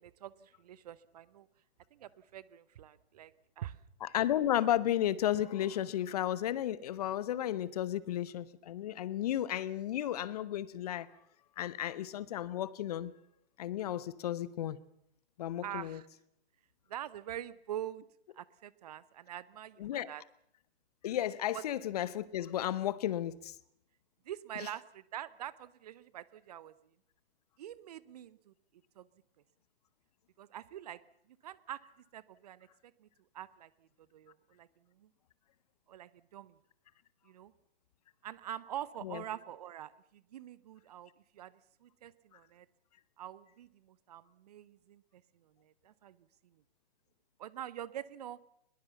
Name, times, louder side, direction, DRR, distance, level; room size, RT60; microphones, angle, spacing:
voice 1, 0.0-1.5 1.9-3.8 15.6-16.1 16.9-18.0 18.4-20.2 21.5-21.6 24.3-26.7 27.6-28.5 29.0-29.1 30.4-31.0 31.4-31.8 32.1-32.7 33.0-33.1 33.3-34.7 35.0-35.1 35.9-36.6 37.3-37.5 38.2-41.5 41.8-42.7 43.2-46.2 47.4-48.4, right 11 dB, 40° right, 0.8 m, -45 dB
voice 2, 4.0-11.1 11.6-13.1 13.6-14.8 15.4-16.0 19.8-20.1 21.0-23.5 24.6-24.7 39.0-39.2, left 12 dB, 35° left, 0.9 m, -33 dB
21.0 x 21.0 x 7.1 m
figure-of-eight pair, 125°, 32 cm